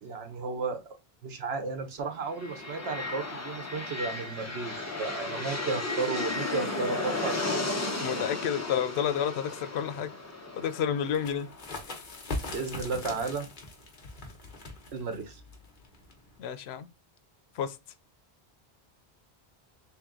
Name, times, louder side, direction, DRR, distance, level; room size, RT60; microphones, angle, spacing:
voice 1, 0.0-0.8 1.2-7.7 12.5-13.5 14.9-15.4, right 4 dB, 80° right, 1.1 m, -34 dB
sound 1, 2.3-12.1, left 2 dB, 20° left, 0.5 m, -34 dB
voice 2, 8.0-10.1 10.6-11.5 16.4-16.9 17.6-17.8, left 8 dB, 90° left, 0.8 m, -30 dB
sound 2, 11.0-16.4, left 2 dB, 50° left, 1.1 m, -40 dB
3.3 x 2.9 x 3.6 m
omnidirectional pair, 1.0 m